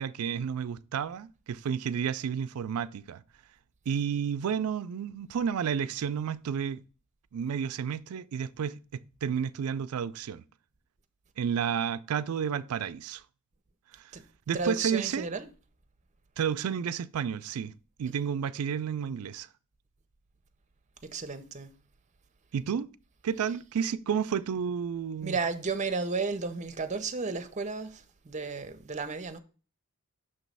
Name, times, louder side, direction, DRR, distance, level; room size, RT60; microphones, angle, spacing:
voice 1, 0.0-3.2 3.9-6.8 7.3-10.4 11.4-13.2 14.5-15.3 16.4-17.7 18.0-19.5 22.5-22.9 23.2-25.4, right 7 dB, 70° right, 0.4 m, -31 dB
voice 2, 14.5-15.5 18.0-18.2 21.0-21.7 23.4-23.6 25.2-29.4, right 4 dB, 35° right, 0.6 m, -33 dB
6.4 x 3.1 x 5.3 m
head